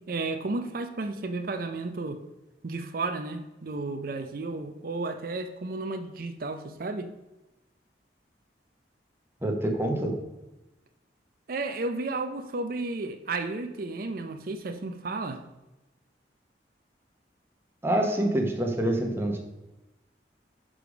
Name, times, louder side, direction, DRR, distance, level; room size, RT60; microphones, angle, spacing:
voice 1, 0.1-2.2 2.6-7.1 11.5-15.4, right 3 dB, 55° right, 7 dB, 0.5 m, -33 dB
voice 2, 9.4-10.1 17.8-19.4, right 1 dB, 15° right, 1 dB, 1.0 m, -26 dB
6.8 x 4.9 x 5.0 m, 1.0 s
head